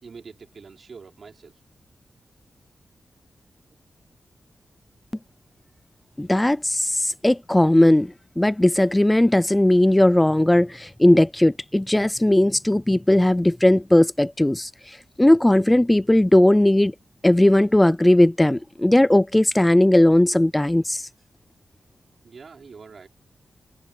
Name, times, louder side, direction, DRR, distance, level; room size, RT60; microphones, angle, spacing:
voice 1, 0.0-1.6 22.2-23.1, right 5 dB, 65° right, 5.5 m, -44 dB
voice 2, 6.2-16.9 17.2-21.1, left 1 dB, 15° left, 0.4 m, -18 dB
cardioid pair, 70°, 0 cm